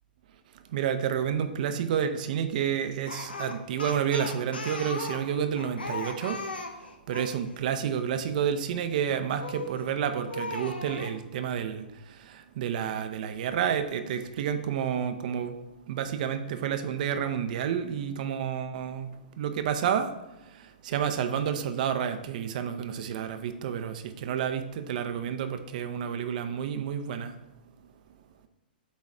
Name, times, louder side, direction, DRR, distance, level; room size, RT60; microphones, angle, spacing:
voice 1, 0.7-6.4 7.1-15.6 15.9-19.1 19.4-20.1 20.5-27.3, right 8 dB, 55° right, 9 dB, 0.6 m, -30 dB
Speech, 3.1-7.4 9.4-9.8 10.3-11.2, left 2 dB, 90° left, 0.9 m, -37 dB
8.3 x 3.1 x 4.9 m, 0.92 s
hypercardioid pair, 115°, 5 cm